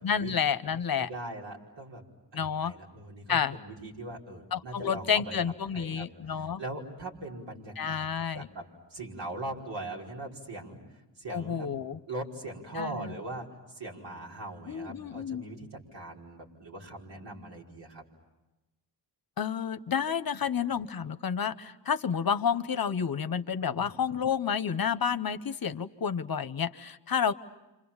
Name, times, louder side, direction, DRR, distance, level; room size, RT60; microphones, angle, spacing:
voice 1, 0.0-1.1 2.3-2.7 3.3-3.6 4.5-6.6 7.8-8.5 11.3-12.0 12.7-13.1 14.7-15.4 19.4-27.3, left 7 dB, 55° left, 12 dB, 1.0 m, -30 dB
voice 2, 1.0-2.0 2.3-5.4 5.7-8.6 8.9-10.8 11.2-11.7 12.1-13.5 13.7-18.0 23.7-23.9, right 2 dB, 80° right, -2 dB, 5.4 m, -41 dB
30.0 x 27.0 x 7.2 m, 1.0 s
wide cardioid pair, 100°, 43 cm